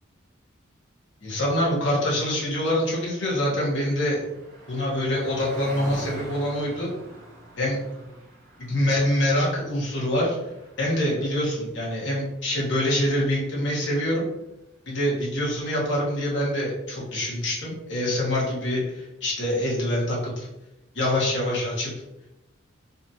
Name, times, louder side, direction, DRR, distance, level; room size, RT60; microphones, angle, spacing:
voice 1, 1.2-4.2 4.7-6.9 7.6-7.8 8.6-10.4 10.8-14.3 14.9-20.5 20.9-21.9, left 1 dB, 65° left, -5 dB, 1.5 m, -25 dB
Car passing by, 3.1-14.5, right 1 dB, 45° right, 1.2 m, -45 dB
4.2 x 2.8 x 2.8 m, 0.89 s
head